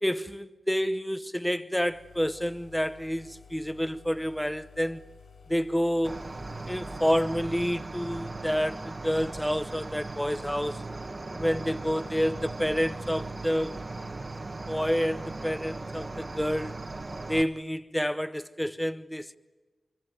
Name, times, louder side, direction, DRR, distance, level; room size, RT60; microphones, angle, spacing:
voice 1, 0.0-5.0 5.5-6.2 6.7-10.9 11.3-13.7 14.7-16.7 17.3-19.4, equal, 5° left, 1.0 m, -29 dB
sound 1, 1.8-7.8, left 5 dB, 65° left, 6.3 m, -53 dB
Cricket, 6.0-17.4, right 2 dB, 30° right, 1.5 m, -38 dB
24.5 x 24.5 x 9.3 m
wide cardioid pair, 115°, 0 cm